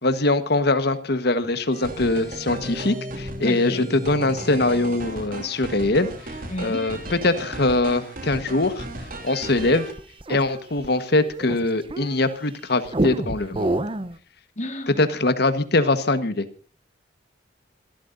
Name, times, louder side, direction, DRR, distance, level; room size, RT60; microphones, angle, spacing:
voice 1, 0.0-6.1 6.6-8.8 9.2-9.9 10.3-13.8 15.0-16.5, left 2 dB, 60° left, 11 dB, 1.4 m, -22 dB
sound 1, 1.7-9.9, right 1 dB, 50° right, 3.2 m, -35 dB
voice 2, 3.4-4.0 6.5-6.9 14.6-15.0, left 1 dB, 40° left, 6 dB, 2.0 m, -32 dB
sound 2, 9.4-12.4 12.9-14.2, right 1 dB, 30° right, 0.8 m, -28 dB
26.5 x 13.0 x 2.7 m, 0.40 s
head